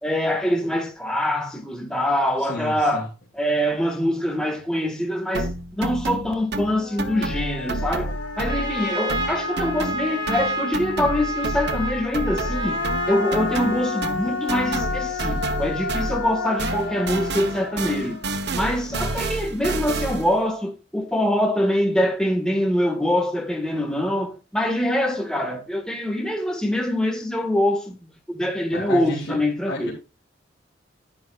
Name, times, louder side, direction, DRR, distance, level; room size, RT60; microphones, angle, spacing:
voice 1, 0.0-3.1 3.3-12.8 13.1-18.2 18.5-29.9, left 1 dB, 5° left, 1.7 m, -24 dB
voice 2, 2.4-3.1 18.9-19.1 28.7-29.4 29.6-29.9, left 1 dB, 65° left, 2.8 m, -32 dB
sound 1, 5.3-8.8 9.1-16.3 16.6-20.4, right 2 dB, 60° right, 1.1 m, -30 dB
Human voice, 6.3-6.4 6.8-10.4 12.1-19.4, left 4 dB, 85° left, 1.0 m, -32 dB
Trumpet, 8.1-14.1, equal, 25° right, 3.9 m, -30 dB
10.5 x 10.0 x 2.4 m
head